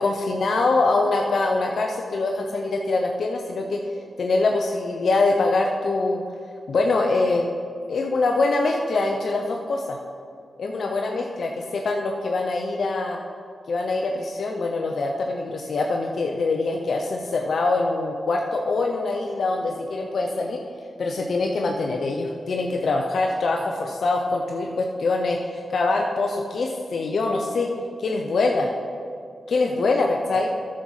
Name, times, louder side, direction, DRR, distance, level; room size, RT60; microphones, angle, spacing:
voice 1, 0.0-3.8 4.2-6.2 6.7-7.5 7.9-10.0 10.6-13.2 13.7-20.6 21.0-27.7 28.0-28.7 29.5-30.5, left 3 dB, 70° left, 2 dB, 0.7 m, -24 dB
9.7 x 6.4 x 5.7 m, 2.4 s
cardioid pair, 50°, 0 cm